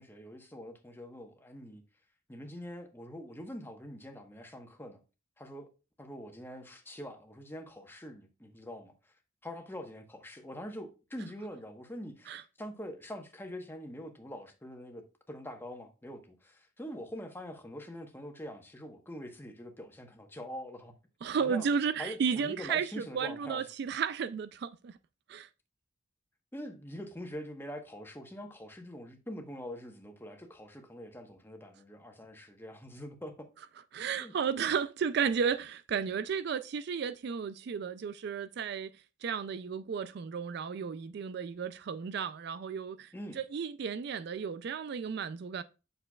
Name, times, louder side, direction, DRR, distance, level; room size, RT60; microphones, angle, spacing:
voice 1, 0.0-1.8 2.3-5.0 5.4-5.7 6.0-9.1 9.4-15.0 15.3-20.9 21.3-21.7 22.0-23.6 26.5-33.5 34.0-34.3 43.1-43.4, equal, 10° left, 1.1 m, -44 dB
voice 2, 21.2-25.0 25.3-25.5 33.9-38.9 39.2-45.6, right 6 dB, 60° right, 0.3 m, -33 dB
8.6 x 6.6 x 2.3 m
head